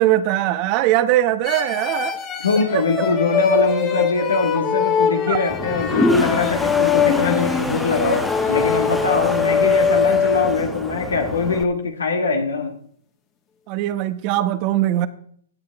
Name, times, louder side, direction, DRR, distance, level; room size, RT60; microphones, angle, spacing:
voice 1, 0.0-2.2 2.7-2.8 5.3-5.4 13.7-15.1, right 14 dB, 40° right, 1.0 m, -20 dB
sound 1, 1.4-10.8, left 7 dB, 25° left, 1.9 m, -22 dB
voice 2, 2.4-12.8, left 3 dB, 80° left, 1.8 m, -22 dB
Toilet flush, 5.5-11.6, left 1 dB, ahead, 1.2 m, -27 dB
16.0 x 9.5 x 3.5 m
hypercardioid pair, 120°, 0 cm